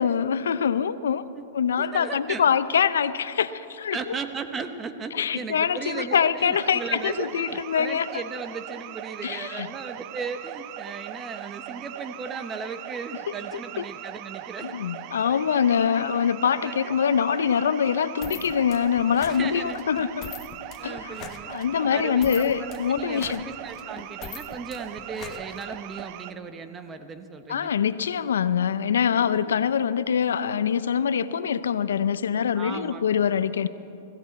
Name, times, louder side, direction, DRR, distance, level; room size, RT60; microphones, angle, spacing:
voice 1, 0.0-1.2 1.5-4.1 5.1-8.1 9.2-9.7 13.5-13.6 14.6-20.3 20.8-21.2 21.5-23.4 27.5-33.7, left 7 dB, 90° left, 15 dB, 0.5 m, -24 dB
voice 2, 1.8-2.5 3.9-14.7 16.6-16.9 19.3-19.8 20.8-21.5 21.9-27.7 29.1-29.6 32.6-33.2, right 5 dB, 20° right, 9 dB, 0.9 m, -36 dB
sound 1, 6.5-26.3, right 12 dB, 45° right, 0.5 m, -40 dB
sound 2, 18.2-26.1, left 9 dB, 35° left, 0.8 m, -43 dB
21.0 x 15.5 x 4.1 m, 3.0 s
hypercardioid pair, 135°, 0 cm